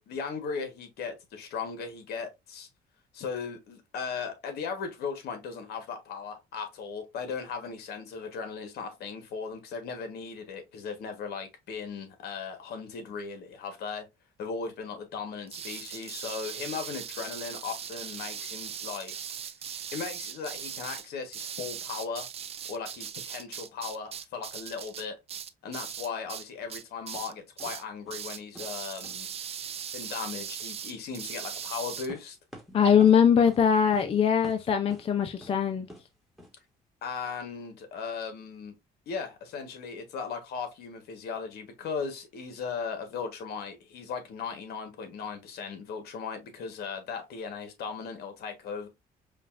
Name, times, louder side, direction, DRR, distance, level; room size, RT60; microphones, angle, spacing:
voice 1, 0.0-2.7 3.1-14.1 14.4-19.2 19.9-22.3 22.7-25.2 25.6-29.3 29.9-32.4 37.0-38.7 39.1-48.9, left 5 dB, 70° left, 1.2 m, -37 dB
sound 1, 15.5-26.4 26.7-27.3 27.6-27.8 28.1-32.1, right 8 dB, 35° right, 0.4 m, -39 dB
sound 2, 27.1-27.3 27.6-27.8 28.1-28.3 28.6-28.8 29.0-29.2 32.1-33.2 33.5-33.6 33.9-34.1 34.4-35.1 35.4-35.5 35.9-36.1 36.4-36.5, equal, ahead, 1.2 m, -46 dB
voice 2, 32.7-35.9, left 7 dB, 35° left, 0.5 m, -22 dB
5.1 x 2.4 x 2.4 m
cardioid pair, 110°, 17 cm